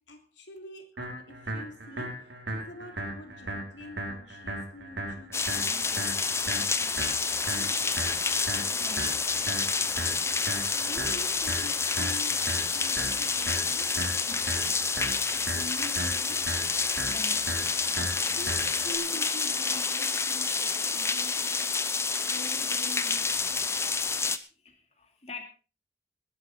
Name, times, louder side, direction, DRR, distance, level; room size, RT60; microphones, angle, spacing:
voice 1, 0.0-7.2 7.5-7.8 9.7-10.0 10.7-14.4 14.7-15.1 15.5-16.9 17.4-21.5 22.2-23.7, left 1 dB, 90° left, 3.0 m, -46 dB
sound 1, 1.0-19.0, right 1 dB, 85° right, 5.4 m, -37 dB
sound 2, 5.3-24.4, left 4 dB, 15° left, 0.7 m, -28 dB
voice 2, 8.7-9.3 14.3-14.4 17.0-17.7 21.3-21.4 24.5-25.4, left 3 dB, 35° left, 2.7 m, -45 dB
20.5 x 10.5 x 3.9 m
head